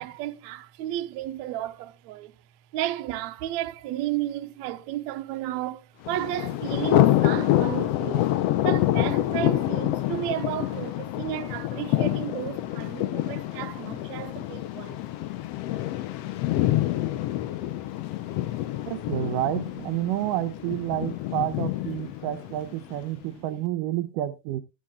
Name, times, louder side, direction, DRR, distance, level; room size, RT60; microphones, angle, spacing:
voice 1, 0.0-2.3 2.7-8.3 8.6-15.0 19.9-20.1 21.0-21.1 21.6-21.7 22.1-22.2 23.4-23.7, right 13 dB, 70° right, 2.0 m, -33 dB
Thunder, 6.1-23.0, left 14 dB, 75° left, 1.4 m, -27 dB
voice 2, 18.9-24.6, right 14 dB, 85° right, 2.5 m, -29 dB
15.5 x 11.5 x 2.3 m
omnidirectional pair, 3.7 m